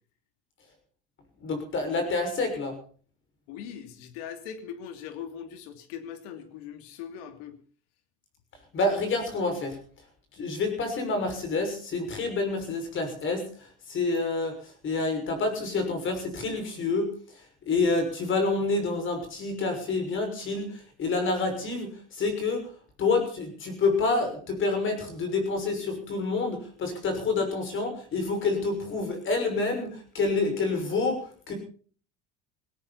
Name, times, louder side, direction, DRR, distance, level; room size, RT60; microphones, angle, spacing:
voice 1, 1.4-2.8 8.7-9.8 10.4-17.1 17.6-22.7 23.0-31.5, left 3 dB, 40° left, 6 dB, 6.2 m, -28 dB
voice 2, 3.5-7.6, left 8 dB, 85° left, 8 dB, 3.0 m, -40 dB
18.5 x 17.5 x 4.3 m, 0.43 s
cardioid pair, 140°, 31 cm